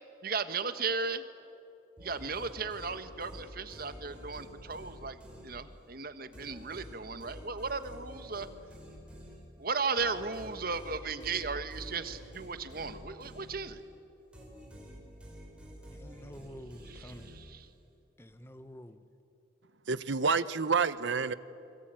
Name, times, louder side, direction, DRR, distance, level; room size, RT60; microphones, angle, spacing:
voice 1, 0.2-1.2 2.0-5.2 5.4-8.5 9.6-13.8 16.9-17.6, right 4 dB, 50° right, 10 dB, 1.4 m, -36 dB
sound 1, 2.0-5.9 6.3-14.0 14.3-17.8, equal, 5° right, 5.8 m, -49 dB
voice 2, 15.9-17.3 18.2-19.0, equal, 15° left, 10 dB, 1.2 m, -48 dB
voice 3, 19.9-21.3, right 5 dB, 70° right, 15 dB, 0.9 m, -28 dB
28.5 x 22.0 x 9.1 m, 2.8 s
head